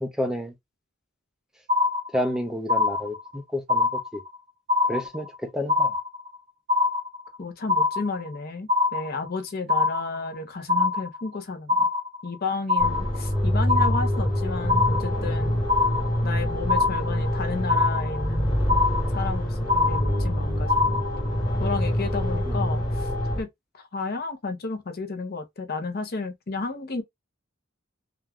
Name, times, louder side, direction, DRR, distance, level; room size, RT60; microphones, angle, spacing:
voice 1, 0.0-0.5 2.1-4.2 4.9-5.9 22.4-22.6, left 1 dB, 5° right, 0.3 m, -30 dB
sound 1, 1.7-2.4 2.7-3.4 3.7-4.4 4.7-5.4 5.7-6.4 6.7-7.4 7.7-8.4 8.7-9.4 9.7-10.4 10.7-11.4 11.7-12.4 12.7-13.4 13.7-14.4 14.7-15.4 15.7-16.4 16.7-17.4 17.7-18.4 18.7-19.4 19.7-20.4 20.7-21.4, left 3 dB, 45° right, 0.8 m, -24 dB
voice 2, 7.4-11.9 12.2-15.6 16.2-18.8 19.1-21.0 21.6-23.1 23.4-23.5 23.7-27.0, left 3 dB, 50° left, 0.6 m, -32 dB
sound 2, 12.8-23.4, equal, 25° left, 1.3 m, -25 dB
2.3 x 2.3 x 3.3 m
head